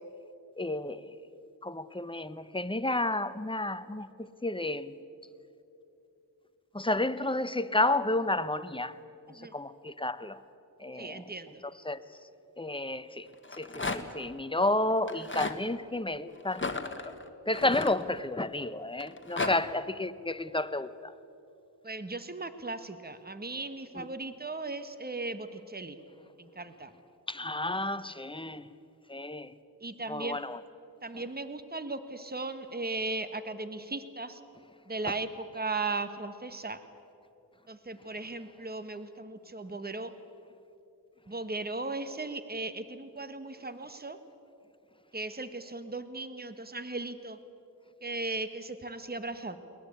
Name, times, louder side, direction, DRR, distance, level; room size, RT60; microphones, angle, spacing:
voice 1, 0.6-4.9 6.7-9.0 9.3-10.4 10.8-11.2 11.8-12.0 12.6-17.2 17.5-21.1 24.0-24.1 27.3-28.7 29.1-29.5 30.1-30.6, left 2 dB, 10° left, 1.0 m, -31 dB
voice 2, 11.0-11.6 19.4-19.6 21.8-26.0 26.4-26.9 29.8-30.6 31.0-34.4 34.9-36.8 37.7-40.1 41.3-44.2 45.1-47.4 48.0-49.6, right 3 dB, 20° right, 1.4 m, -37 dB
Rattle, 13.3-14.2 15.0-15.6 16.5-18.5 19.0-19.5, left 3 dB, 30° left, 1.6 m, -35 dB
22.5 x 19.0 x 8.7 m
cardioid pair, 45°, 42 cm